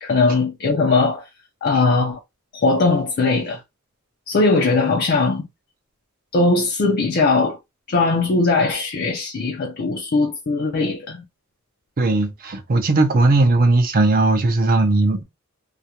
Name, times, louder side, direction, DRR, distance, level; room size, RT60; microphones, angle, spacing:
voice 1, 0.0-1.2 1.6-2.2 2.5-3.6 4.3-5.5 6.3-7.6 7.9-11.2, left 3 dB, 50° left, 0.4 m, -19 dB
voice 2, 12.0-15.2, right 2 dB, 40° right, 0.5 m, -17 dB
2.4 x 2.1 x 2.8 m
head